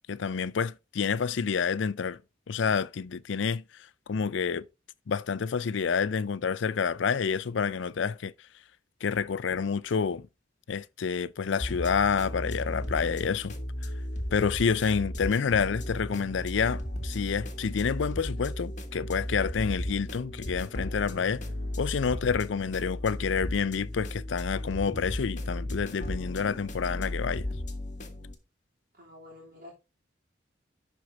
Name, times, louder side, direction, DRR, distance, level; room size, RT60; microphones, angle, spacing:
voice 1, 0.0-2.2 2.5-4.7 5.1-8.3 9.0-10.3 10.7-13.6 13.8-13.9 14.3-21.4 21.8-27.5, left 6 dB, 75° left, 0.4 m, -28 dB
sound 1, 11.6-28.3, left 1 dB, 40° left, 1.6 m, -35 dB
voice 2, 28.9-29.7, left 2 dB, 50° right, 3.1 m, -49 dB
11.5 x 4.6 x 3.9 m
head